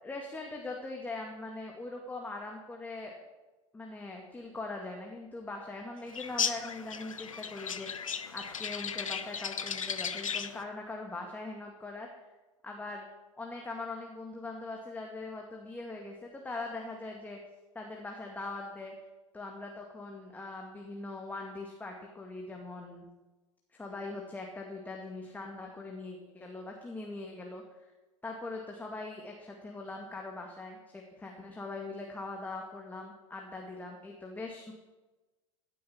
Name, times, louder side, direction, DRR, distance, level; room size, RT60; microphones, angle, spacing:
voice 1, 0.0-3.1 3.7-12.1 12.6-13.1 13.4-17.4 17.7-19.0 19.3-23.1 23.7-27.6 28.2-34.7, left 2 dB, 10° left, 1 dB, 2.2 m, -41 dB
sound 1, 6.1-10.6, left 6 dB, 75° left, 1.0 m, -36 dB
16.5 x 9.7 x 7.6 m, 1.1 s
figure-of-eight pair, 85°, 17 cm